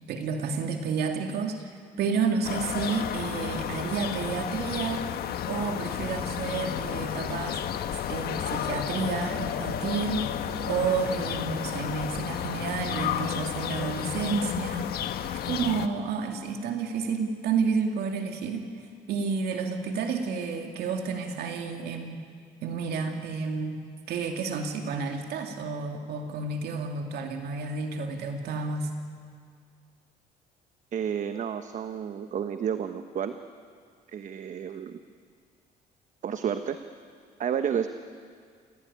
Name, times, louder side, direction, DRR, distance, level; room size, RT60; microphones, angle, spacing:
voice 1, 0.1-5.1 5.4-7.6 7.9-10.3 10.7-22.2 22.6-23.8 24.1-28.9, right 5 dB, 70° right, 4 dB, 2.5 m, -30 dB
sound 1, 2.4-15.9, left 10 dB, 65° left, 1.4 m, -32 dB
voice 2, 30.9-33.4 34.1-35.0 36.2-36.8 37.4-37.9, right 8 dB, 45° right, 9 dB, 1.1 m, -31 dB
28.0 x 17.5 x 9.7 m, 2.1 s
cardioid pair, 110°, 17 cm